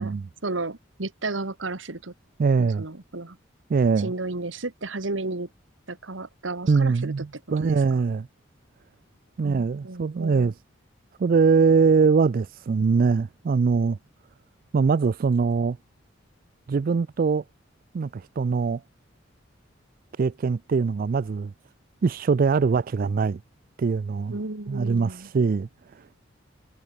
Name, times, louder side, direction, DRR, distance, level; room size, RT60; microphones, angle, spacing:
voice 1, 0.4-2.1 2.6-3.4 4.0-5.5 5.9-7.1 7.6-8.0 9.4-10.5 24.3-25.3, right 2 dB, 80° right, 1.9 m, -33 dB
voice 2, 2.4-2.8 3.7-4.1 6.7-8.3 9.4-10.5 11.2-14.0 14.7-15.8 16.7-17.4 17.9-18.8 20.2-21.5 22.0-23.4 23.8-24.4 24.7-26.1, right 5 dB, 50° right, 0.4 m, -22 dB
head